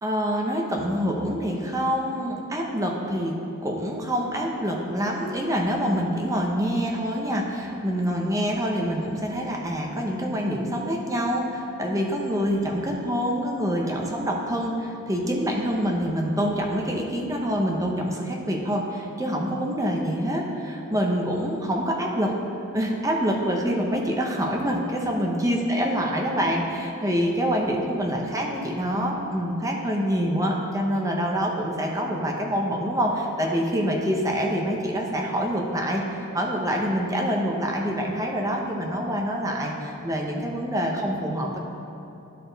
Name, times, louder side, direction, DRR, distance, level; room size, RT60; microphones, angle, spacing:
voice 1, 0.0-22.3 22.7-41.6, equal, 15° right, 0 dB, 0.7 m, -26 dB
12.0 x 4.2 x 3.9 m, 2.9 s
head